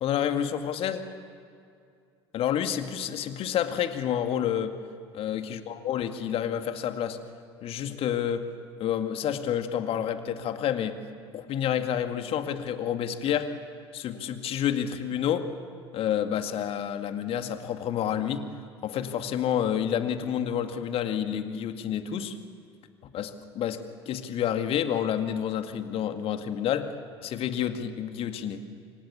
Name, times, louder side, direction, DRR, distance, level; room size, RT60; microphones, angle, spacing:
voice 1, 0.0-1.0 2.3-4.7 5.1-7.2 7.6-8.4 8.8-11.0 11.3-13.5 13.9-15.5 15.9-18.4 18.8-22.4 23.1-26.9 27.2-28.6, left 9 dB, 45° left, 8 dB, 2.1 m, -29 dB
28.5 x 24.5 x 8.5 m, 2.4 s
figure-of-eight pair, 65°, 14 cm